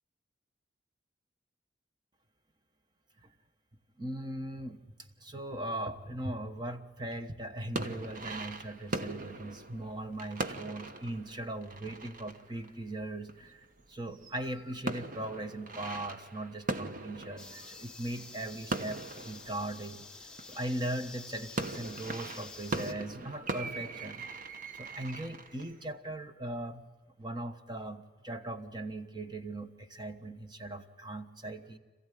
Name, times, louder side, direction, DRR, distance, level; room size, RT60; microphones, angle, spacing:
voice 1, 4.0-24.2 24.7-26.8 27.2-31.8, right 1 dB, 25° right, 8 dB, 1.2 m, -39 dB
sound 1, 7.6-13.8 14.1-20.8 21.3-25.8, right 2 dB, 45° right, 1.1 m, -40 dB
sound 2, 17.4-22.9, left 3 dB, 5° left, 1.0 m, -49 dB
26.5 x 15.5 x 9.2 m, 1.4 s
head